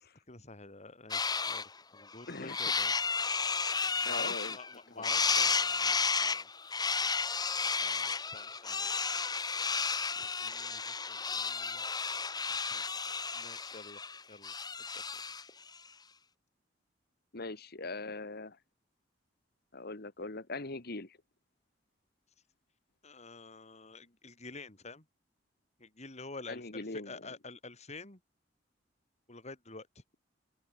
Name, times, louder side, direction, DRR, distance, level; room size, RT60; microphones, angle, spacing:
voice 1, 0.3-2.9 4.0-6.5 7.8-8.9 10.2-11.8 12.7-14.0 14.3-14.5 14.9-15.1 23.0-25.0 25.8-28.2 29.3-29.9, left 3 dB, 40° left, 4.2 m, -49 dB
sound 1, 1.1-1.7 2.1-4.7 5.0-15.5, left 5 dB, 20° left, 1.7 m, -32 dB
voice 2, 2.3-2.6 4.0-4.6 4.9-5.0 10.2-10.3 17.3-18.6 19.7-21.2 26.5-27.3, left 3 dB, 55° left, 2.0 m, -41 dB
open air
head